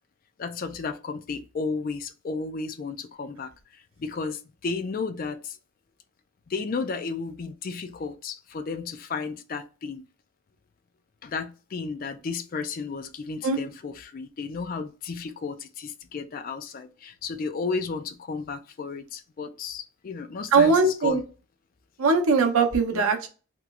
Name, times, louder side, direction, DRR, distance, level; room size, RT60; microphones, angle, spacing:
voice 1, 0.4-5.6 6.5-10.0 11.2-21.2 22.9-23.0, left 4 dB, 40° left, 0.3 m, -33 dB
voice 2, 20.5-21.2 22.0-23.3, right 4 dB, 80° right, 0.6 m, -20 dB
3.0 x 2.9 x 2.3 m
head